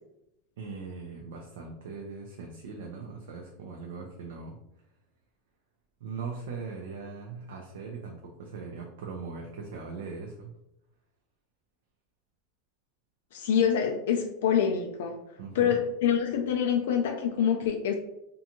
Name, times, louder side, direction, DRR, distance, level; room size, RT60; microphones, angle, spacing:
voice 1, 0.6-4.6 6.0-10.5 15.4-15.8, right 4 dB, 90° right, 0 dB, 0.4 m, -40 dB
voice 2, 13.3-15.2 15.5-17.9, left 8 dB, 85° left, 4 dB, 0.3 m, -26 dB
2.5 x 2.2 x 2.8 m, 0.85 s
supercardioid pair, 175°, 0 cm